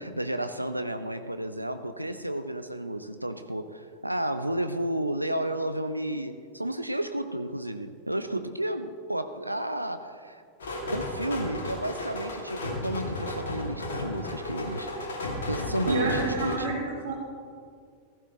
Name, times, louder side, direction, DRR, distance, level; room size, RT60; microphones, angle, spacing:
voice 1, 0.0-10.4 10.9-15.0 15.5-16.7, right 1 dB, 85° right, 10 dB, 0.4 m, -32 dB
sound 1, 10.6-16.6, left 2 dB, 65° left, 2.3 m, -34 dB
voice 2, 15.9-17.1, right 3 dB, 65° right, -4 dB, 3.3 m, -29 dB
15.5 x 14.5 x 3.1 m, 2.2 s
figure-of-eight pair, 90°, 0 cm